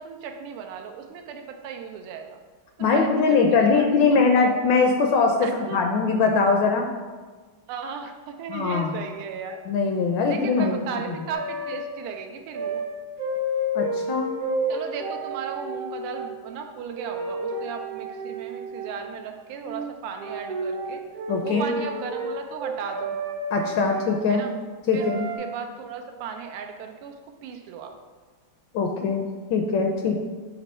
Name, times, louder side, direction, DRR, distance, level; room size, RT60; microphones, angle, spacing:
voice 1, 0.0-2.4 2.8-3.8 4.1-4.6 5.4-5.8 7.7-9.6 10.3-12.8 14.7-21.0 21.4-23.2 24.3-24.5 24.9-27.9, right 6 dB, 90° right, 4 dB, 1.5 m, -36 dB
voice 2, 2.8-6.9 8.5-8.9 9.7-10.8 13.7-14.3 21.3-21.7 23.5-24.5 24.9-25.3 28.7-30.2, left 4 dB, 75° left, 3 dB, 1.1 m, -22 dB
sound 1, 11.3-11.9 12.5-12.9 13.2-16.3 16.9-18.9 19.6-19.9 20.2-24.2 25.0-25.4, right 1 dB, 65° right, 0.9 m, -30 dB
7.7 x 3.0 x 5.4 m, 1.4 s
omnidirectional pair, 2.4 m